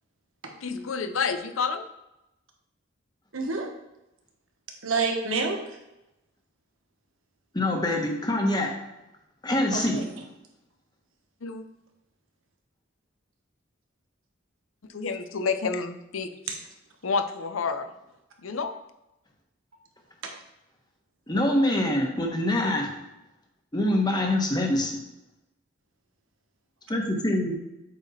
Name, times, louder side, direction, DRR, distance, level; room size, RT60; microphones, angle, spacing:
voice 1, 0.6-1.9 11.4-11.6 14.9-16.3 17.0-17.9 18.4-18.7, left 5 dB, 85° left, 10 dB, 0.6 m, -29 dB
voice 2, 3.3-3.7 4.8-5.8 9.7-10.0 16.5-16.6 20.2-20.3, right 4 dB, 90° right, 2 dB, 1.4 m, -28 dB
voice 3, 7.5-8.7 9.4-10.0 21.3-22.9 23.7-25.0 26.9-27.5, left 1 dB, 20° left, 1 dB, 1.2 m, -25 dB
7.8 x 4.9 x 4.2 m, 0.92 s
head